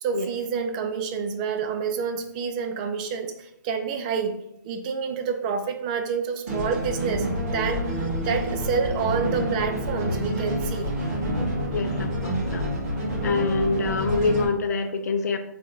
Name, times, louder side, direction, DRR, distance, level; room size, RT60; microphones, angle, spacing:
voice 1, 0.0-4.4 4.6-10.9, right 6 dB, 25° right, 6 dB, 0.4 m, -28 dB
sound 1, 6.5-14.5, equal, 45° right, 1.5 m, -28 dB
voice 2, 11.7-12.7 13.2-15.4, left 4 dB, 55° left, 8 dB, 0.5 m, -26 dB
4.6 x 3.2 x 2.7 m, 0.79 s
hypercardioid pair, 150°, 11 cm